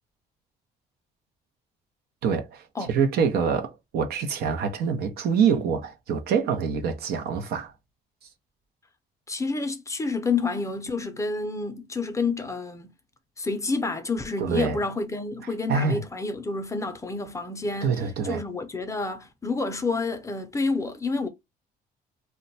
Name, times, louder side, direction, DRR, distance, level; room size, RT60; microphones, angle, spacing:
voice 1, 2.2-7.7 14.4-14.8 15.7-16.0 17.8-18.4, right 6 dB, 70° right, 0.7 m, -25 dB
voice 2, 9.3-12.9 13.4-18.0 18.3-21.3, left 3 dB, 20° left, 0.5 m, -29 dB
2.2 x 2.1 x 3.9 m
cardioid pair, 110°, 17 cm